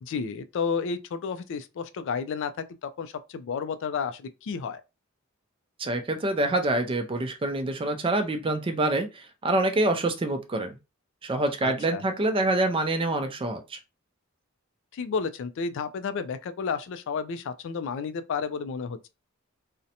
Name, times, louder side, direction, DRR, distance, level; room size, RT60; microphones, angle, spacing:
voice 1, 0.0-4.8 11.6-12.0 14.9-19.1, left 5 dB, 60° left, 0.3 m, -31 dB
voice 2, 5.8-10.8 11.2-13.8, right 2 dB, 25° right, 0.4 m, -26 dB
2.5 x 2.1 x 2.7 m
head